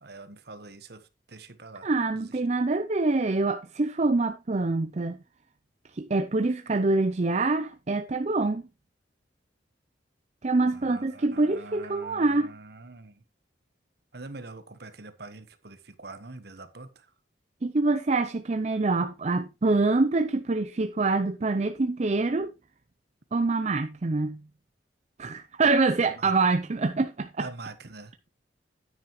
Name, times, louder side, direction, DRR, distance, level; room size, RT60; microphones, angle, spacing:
voice 1, 0.0-1.9 2.1-2.4 10.7-13.2 14.1-17.1 26.1-26.3 27.4-28.3, right 3 dB, 55° right, 1.2 m, -44 dB
voice 2, 1.8-5.2 6.0-8.6 10.4-12.5 17.6-22.5 23.3-24.4 25.2-27.5, right 3 dB, 35° right, 0.5 m, -25 dB
9.8 x 9.5 x 3.1 m
head